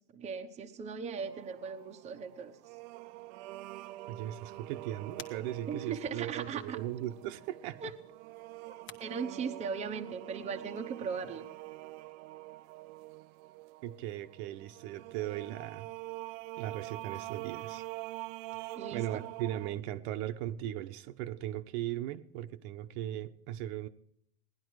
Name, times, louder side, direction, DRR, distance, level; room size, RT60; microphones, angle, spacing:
voice 1, 0.1-2.6 5.7-6.8 7.8-7.9 8.7-11.5 18.7-19.2, right 6 dB, 20° right, 5 dB, 1.0 m, -38 dB
sound 1, 1.2-19.7, right 19 dB, 50° right, 0.5 m, -45 dB
sound 2, 1.9-9.0, left 7 dB, 35° left, 1.3 m, -57 dB
voice 2, 4.1-7.9 13.8-15.9 16.6-17.9 18.6-23.9, right 13 dB, 70° right, 8 dB, 1.1 m, -38 dB
17.5 x 11.5 x 4.8 m, 0.69 s
cardioid pair, 170°, 34 cm